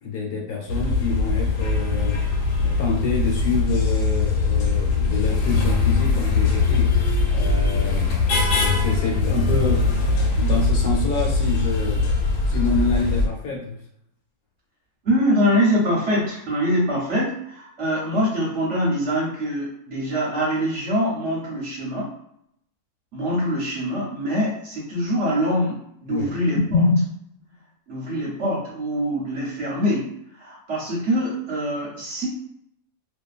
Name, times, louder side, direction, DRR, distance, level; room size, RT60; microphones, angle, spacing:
voice 1, 0.0-2.2 2.6-6.9 7.2-9.8 10.4-12.0 12.5-13.8 26.1-26.3, left 4 dB, 70° left, -3 dB, 1.2 m, -27 dB
sound 1, 0.7-13.3, left 3 dB, 90° left, 1.2 m, -21 dB
voice 2, 15.0-22.1 23.1-27.0 27.9-32.3, equal, 55° right, -5 dB, 1.0 m, -23 dB
2.6 x 2.4 x 2.3 m, 0.73 s
omnidirectional pair, 1.7 m